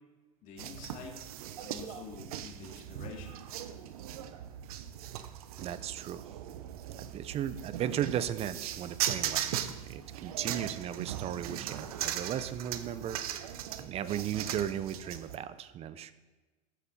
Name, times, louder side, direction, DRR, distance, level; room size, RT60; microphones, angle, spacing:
voice 1, 0.4-1.2 1.6-3.4 4.8-4.9, left 5 dB, 45° left, 0 dB, 2.6 m, -47 dB
sound 1, 0.6-15.4, right 11 dB, 80° right, 0.9 m, -39 dB
voice 2, 5.6-6.2 7.0-16.1, right 10 dB, 35° right, 14 dB, 0.7 m, -36 dB
14.5 x 8.1 x 4.2 m, 1.2 s
supercardioid pair, 120°, 18 cm